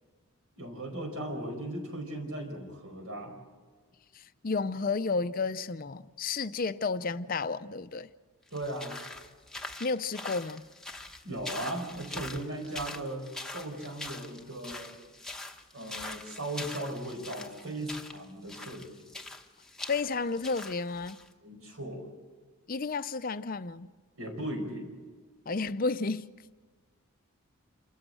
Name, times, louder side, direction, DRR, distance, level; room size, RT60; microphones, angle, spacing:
voice 1, 0.6-3.3 8.5-9.0 11.2-13.2 13.5-14.9 15.7-18.9 21.4-22.0 24.2-24.9, right 1 dB, 70° right, 4.8 m, -37 dB
voice 2, 4.1-8.1 9.8-10.6 19.9-21.2 22.7-23.9 25.5-26.3, left 4 dB, 40° left, 0.5 m, -32 dB
sound 1, 8.5-21.3, left 2 dB, 5° left, 0.9 m, -43 dB
28.0 x 14.0 x 7.7 m
head